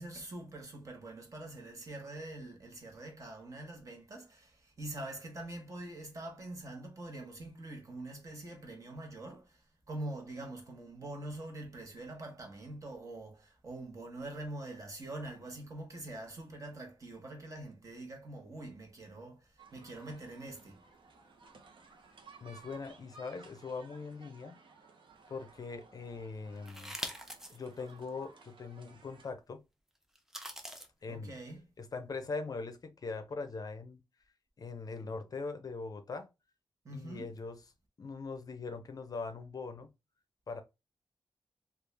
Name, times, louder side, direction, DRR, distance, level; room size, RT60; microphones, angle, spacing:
voice 1, 0.0-20.8 31.1-31.6 36.8-37.3, right 2 dB, 40° right, 1.0 m, -44 dB
sound 1, 19.6-29.3, right 4 dB, 70° right, 0.7 m, -58 dB
voice 2, 22.4-24.6 25.3-26.9 27.5-29.6 31.0-31.4 31.8-34.0 34.6-36.3 36.9-37.6 38.0-39.9 40.5-40.6, left 4 dB, 45° left, 0.5 m, -41 dB
sound 2, 26.7-27.6 28.1-28.2 30.2-30.9, equal, 5° right, 0.5 m, -42 dB
3.4 x 2.4 x 3.2 m
wide cardioid pair, 145°, 9 cm